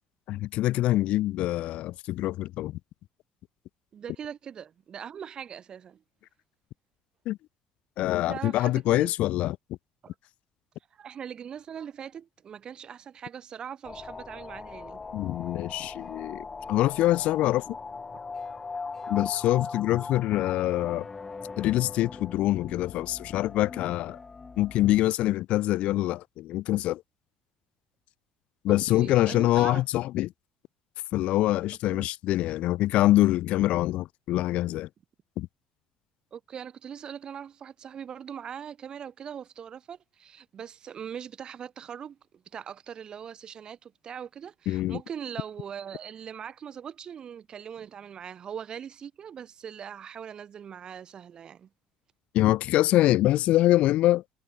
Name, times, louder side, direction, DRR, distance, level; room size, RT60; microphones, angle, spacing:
voice 1, 0.3-2.8 7.3-7.4 8.0-9.6 15.1-17.8 19.1-21.1 21.6-24.2 24.6-27.0 28.6-30.3 31.1-34.9 35.4-35.5 44.7-45.0 52.3-54.2, left 15 dB, 65° left, 1.6 m, -25 dB
voice 2, 3.9-6.0 8.3-9.1 10.0-10.1 10.9-15.0 28.7-29.8 31.9-32.1 36.3-51.7, right 8 dB, 40° right, 4.0 m, -41 dB
sound 1, 13.8-25.0, left 4 dB, 20° left, 3.2 m, -40 dB
cardioid pair, 125°, 2 cm